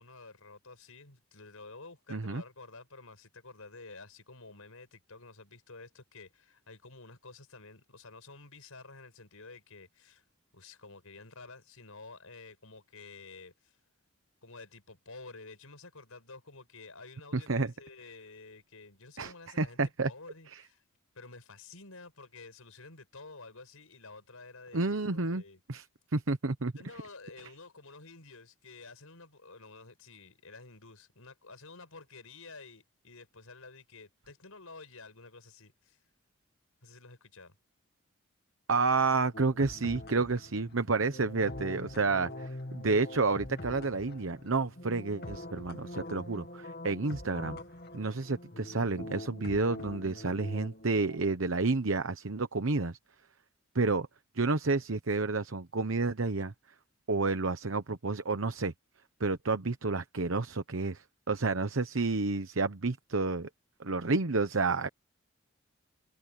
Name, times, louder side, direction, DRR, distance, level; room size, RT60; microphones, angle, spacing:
voice 1, 0.0-10.2 10.5-13.8 14.4-19.8 20.0-20.8 21.1-25.6 26.8-36.0 36.8-37.6, left 3 dB, 90° left, 6.0 m, -51 dB
voice 2, 2.1-2.4 17.3-17.7 19.2-20.1 20.5-20.6 24.7-25.4 25.7-25.8 26.1-26.7 38.7-47.6 47.9-53.0 53.7-54.1 54.3-56.5 57.1-58.7 59.2-63.5 63.8-64.9, right 3 dB, 70° right, 1.0 m, -30 dB
sound 1, 39.3-51.2, left 1 dB, 50° left, 2.3 m, -44 dB
head